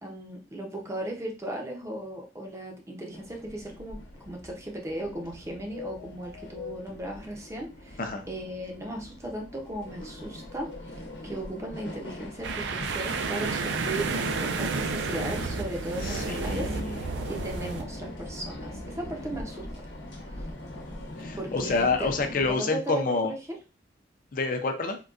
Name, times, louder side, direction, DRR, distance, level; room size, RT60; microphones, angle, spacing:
voice 1, 0.0-4.0 4.3-8.0 8.3-10.7 11.2-14.1 14.4-16.8 17.2-19.9 21.3-22.1 22.5-23.4, right 1 dB, 15° right, 1 dB, 0.5 m, -36 dB
sound 1, 3.1-22.5, left 1 dB, 80° left, 0.9 m, -41 dB
sound 2, 12.4-17.8, right 4 dB, 80° right, 0.4 m, -31 dB
voice 2, 16.0-17.0 21.2-23.3 24.3-25.0, left 3 dB, 50° left, 5 dB, 0.5 m, -28 dB
3.7 x 2.2 x 2.4 m, 0.31 s
head